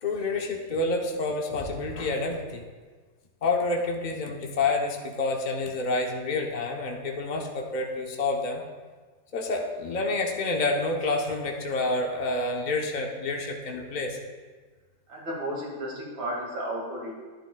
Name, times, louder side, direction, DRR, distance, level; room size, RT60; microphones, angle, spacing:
voice 1, 0.0-2.6 3.4-8.6 9.3-14.2, left 3 dB, 80° left, 1 dB, 0.4 m, -28 dB
voice 2, 15.1-17.1, right 1 dB, 70° right, -3 dB, 2.9 m, -33 dB
11.5 x 10.5 x 2.3 m, 1.4 s
omnidirectional pair, 2.1 m